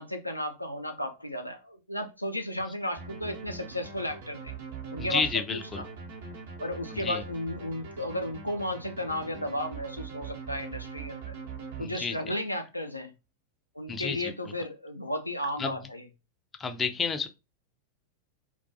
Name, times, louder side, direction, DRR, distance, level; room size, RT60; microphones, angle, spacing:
voice 1, 0.0-4.5 4.9-5.3 5.5-5.8 6.6-11.4 11.8-13.1 13.8-16.1, left 1 dB, 85° left, 0.4 m, -34 dB
sound 1, 3.0-12.3, right 5 dB, 60° right, 0.8 m, -42 dB
voice 2, 5.0-5.8 6.9-7.2 11.8-12.2 13.9-14.3 15.6-15.8 16.6-17.3, left 5 dB, 20° left, 0.4 m, -30 dB
2.2 x 2.2 x 2.6 m
figure-of-eight pair, 90°, 0 cm